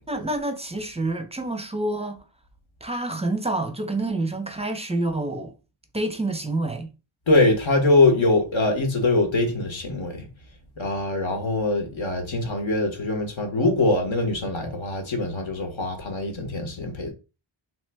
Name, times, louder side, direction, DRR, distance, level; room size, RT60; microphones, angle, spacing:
voice 1, 0.1-2.2 2.8-5.5 5.9-6.9, right 2 dB, 15° right, 0.5 m, -28 dB
voice 2, 7.3-10.3 10.8-17.1, left 2 dB, 70° left, 0.9 m, -23 dB
3.0 x 2.1 x 3.3 m
wide cardioid pair, 50°, 50 cm